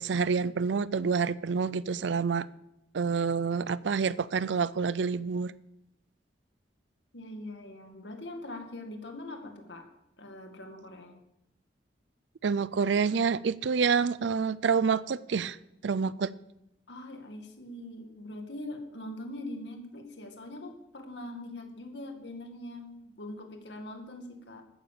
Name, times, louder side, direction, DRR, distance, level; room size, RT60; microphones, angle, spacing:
voice 1, 0.0-2.5 2.9-5.5 12.4-15.6 15.8-16.3, right 5 dB, 85° right, 19 dB, 0.5 m, -27 dB
voice 2, 7.1-9.9 10.2-11.2 16.9-24.6, left 1 dB, 80° left, 4 dB, 2.1 m, -42 dB
13.5 x 10.0 x 6.7 m, 0.85 s
head